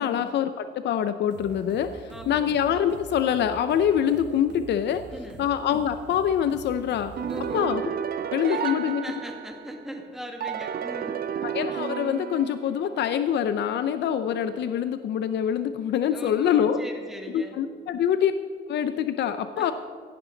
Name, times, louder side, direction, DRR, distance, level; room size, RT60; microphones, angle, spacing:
voice 1, 0.0-5.0 5.4-7.1 7.5-7.8 8.3-9.0 11.4-16.8 17.3-18.3 18.7-19.7, left 9 dB, 75° left, 11 dB, 0.6 m, -25 dB
sound 1, 1.3-7.7, right 5 dB, 80° right, 1.2 m, -45 dB
voice 2, 2.1-2.6 5.1-5.5 7.3-7.7 8.4-11.2 16.1-17.6 19.6-19.7, equal, ahead, 2 dB, 2.0 m, -40 dB
sound 2, 7.2-9.8 10.4-12.9, right 8 dB, 60° right, 0.7 m, -32 dB
16.5 x 11.0 x 3.9 m, 2.2 s
cardioid pair, 110°, 18 cm